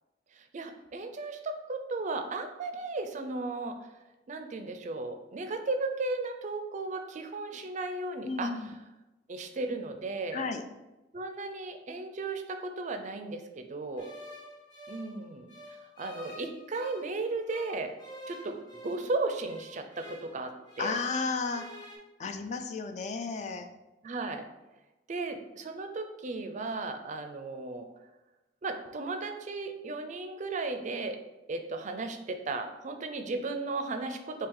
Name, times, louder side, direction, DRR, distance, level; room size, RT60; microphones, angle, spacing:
voice 1, 0.4-3.8 4.3-8.5 9.3-10.5 11.1-14.1 14.9-17.9 18.3-21.0 24.0-24.5 25.1-27.9 28.6-31.2 31.5-34.5, right 3 dB, 40° right, 6 dB, 0.4 m, -35 dB
voice 2, 8.2-8.7 10.3-10.6 20.8-21.7 22.2-23.7, left 4 dB, 40° left, 7 dB, 0.4 m, -33 dB
sound 1, 14.0-17.1 17.5-21.2 21.4-22.0, left 1 dB, 25° left, 1.0 m, -49 dB
4.5 x 2.8 x 3.7 m, 1.0 s
head